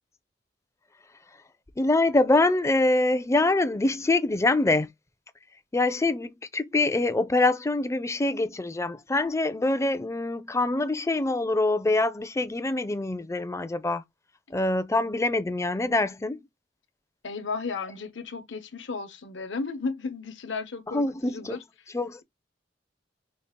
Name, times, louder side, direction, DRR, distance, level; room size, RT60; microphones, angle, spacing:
voice 1, 1.8-4.9 5.7-14.0 14.5-16.4 20.9-21.6 21.9-22.2, left 2 dB, 15° left, 0.4 m, -25 dB
voice 2, 17.2-21.6, left 4 dB, 75° left, 0.9 m, -34 dB
5.3 x 2.3 x 3.6 m
head